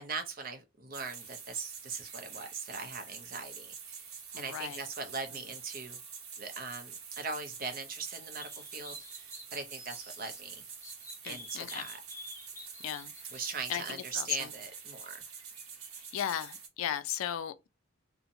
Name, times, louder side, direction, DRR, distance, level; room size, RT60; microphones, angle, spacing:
voice 1, 0.0-6.0 6.4-10.6 11.3-12.0 13.3-15.2, right 4 dB, 40° right, 0.6 m, -40 dB
sound 1, 0.9-16.7, right 6 dB, 85° right, 1.0 m, -47 dB
voice 2, 4.3-4.8 11.2-11.9 12.8-13.4 13.7-14.5 16.0-17.7, left 10 dB, 75° left, 0.3 m, -36 dB
sound 2, 8.4-10.4 10.8-13.8, left 1 dB, 15° left, 0.5 m, -49 dB
2.8 x 2.1 x 2.6 m
head